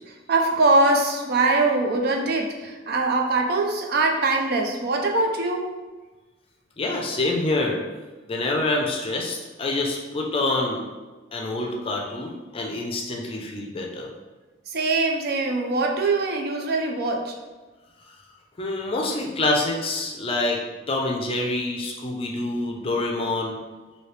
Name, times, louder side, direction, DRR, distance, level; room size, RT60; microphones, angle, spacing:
voice 1, 0.1-5.7 14.7-17.3, right 2 dB, 55° right, 2 dB, 0.4 m, -22 dB
voice 2, 6.8-7.8 8.3-10.8 11.3-14.1 18.6-23.6, left 2 dB, 30° left, 0 dB, 0.4 m, -26 dB
3.0 x 2.7 x 3.2 m, 1.3 s
head